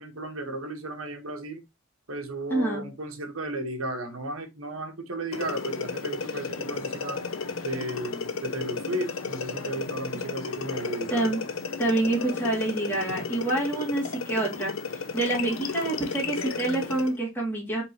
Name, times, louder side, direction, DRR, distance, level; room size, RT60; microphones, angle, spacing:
voice 1, 0.0-1.6 2.1-7.2 7.6-11.3, right 1 dB, 85° right, 1.3 m, -34 dB
voice 2, 2.5-2.9 11.1-11.4 11.8-17.8, right 2 dB, 10° left, 2.2 m, -27 dB
sound 1, 5.3-17.2, left 4 dB, 80° left, 0.8 m, -33 dB
5.0 x 3.8 x 2.8 m
head